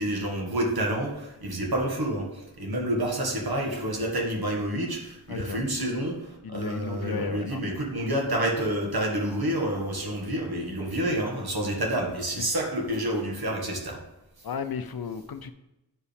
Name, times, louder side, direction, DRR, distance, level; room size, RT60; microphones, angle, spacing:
voice 1, 0.0-14.0 14.4-14.5, right 1 dB, 65° right, 0 dB, 1.8 m, -29 dB
voice 2, 5.3-5.6 6.4-7.8 11.6-11.7 12.4-12.5 14.4-15.5, left 6 dB, 65° left, 10 dB, 0.6 m, -34 dB
9.9 x 4.8 x 3.4 m, 0.94 s
wide cardioid pair, 70°, 39 cm